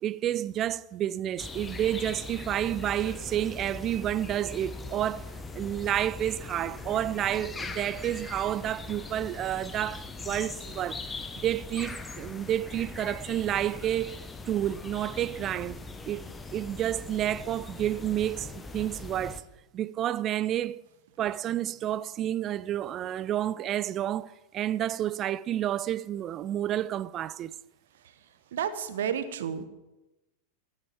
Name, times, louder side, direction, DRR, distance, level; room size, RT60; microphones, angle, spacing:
voice 1, 0.0-11.0 11.4-19.4 19.7-20.8 21.2-27.5, right 12 dB, 30° right, 0.4 m, -30 dB
sound 1, 1.4-19.4, left 3 dB, 15° left, 1.1 m, -41 dB
voice 2, 28.5-29.6, right 8 dB, 60° right, 1.2 m, -31 dB
14.5 x 8.8 x 7.5 m
figure-of-eight pair, 90°, 0 cm